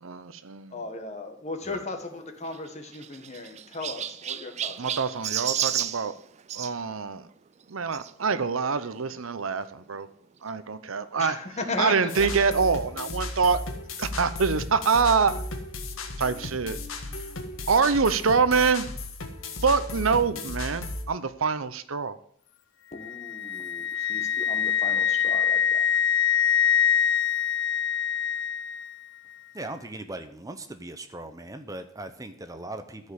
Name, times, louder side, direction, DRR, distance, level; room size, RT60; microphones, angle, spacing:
voice 1, 0.0-0.8 4.8-6.1 6.5-7.3 7.7-10.1 10.4-11.4 11.8-13.6 14.0-15.4 16.2-16.8 17.7-18.9 19.6-22.2, right 5 dB, 80° right, 0.8 m, -25 dB
voice 2, 0.7-4.9 11.2-12.3 22.9-25.9, left 3 dB, 35° left, 1.6 m, -36 dB
Chirp tweet, 2.4-6.7 7.9-8.1 8.8-8.9 9.1-9.2 10.5-10.6, right 10 dB, 35° right, 0.4 m, -32 dB
sound 1, 12.1-21.0, left 2 dB, 80° left, 1.7 m, -35 dB
Wind instrument woodwind instrument, 23.0-29.0, left 8 dB, 60° left, 0.5 m, -24 dB
voice 3, 29.5-33.1, right 2 dB, 15° right, 0.8 m, -39 dB
14.0 x 5.4 x 8.2 m
head